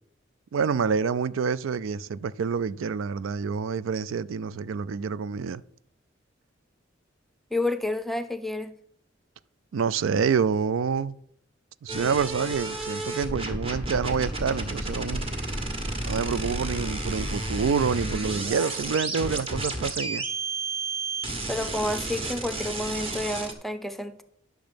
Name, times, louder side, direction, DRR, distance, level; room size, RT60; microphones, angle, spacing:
voice 1, 0.5-5.6 9.7-11.1 11.8-15.3 16.1-20.2, right 6 dB, 90° right, 0.4 m, -27 dB
voice 2, 7.5-8.7 21.5-24.2, left 1 dB, ahead, 0.5 m, -30 dB
sound 1, 11.9-23.5, right 2 dB, 30° right, 1.4 m, -31 dB
10.5 x 6.4 x 5.1 m
head